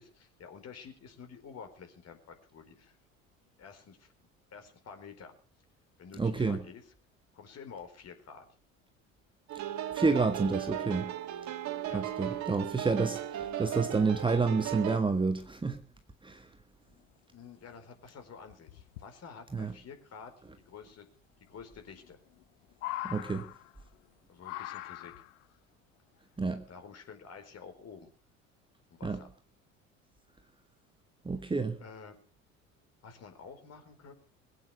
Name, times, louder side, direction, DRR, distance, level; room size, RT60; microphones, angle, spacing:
voice 1, 0.0-3.0 3.6-5.3 6.0-6.9 7.3-8.5 11.9-12.0 16.9-21.1 21.5-22.2 24.3-25.1 26.7-28.1 28.9-29.3 31.8-32.2 33.0-34.1, left 6 dB, 40° left, 4.7 m, -50 dB
voice 2, 6.2-6.6 9.9-11.1 11.9-15.8 16.2-16.5 19.5-19.7 23.0-23.5 26.4-26.6 29.0-29.2 31.2-31.8, right 4 dB, 10° right, 1.5 m, -29 dB
sound 1, 9.5-15.0, right 12 dB, 45° right, 1.9 m, -36 dB
sound 2, 17.4-17.5 17.8-17.9 18.5-19.1 20.6-20.7 21.9-22.4 22.7-24.0 24.4-25.4 26.4-26.5, left 15 dB, 65° left, 1.0 m, -41 dB
22.0 x 8.9 x 6.6 m
figure-of-eight pair, 65°, 40 cm